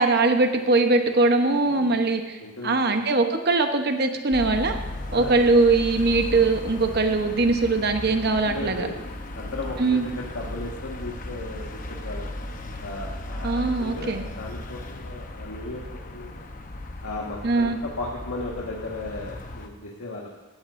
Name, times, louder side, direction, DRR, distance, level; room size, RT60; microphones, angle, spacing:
voice 1, 0.0-4.8 5.1-8.9 9.8-10.0 13.4-14.3 17.4-17.8, right 3 dB, 45° right, 6 dB, 1.0 m, -21 dB
voice 2, 1.6-2.0 2.4-3.0 5.1-5.4 8.4-9.0 9.3-12.3 12.8-16.5 17.0-20.3, left 2 dB, 90° left, -4 dB, 1.7 m, -36 dB
sound 1, 4.3-19.7, left 1 dB, 35° left, 0.9 m, -36 dB
17.5 x 13.0 x 2.6 m, 1.2 s
head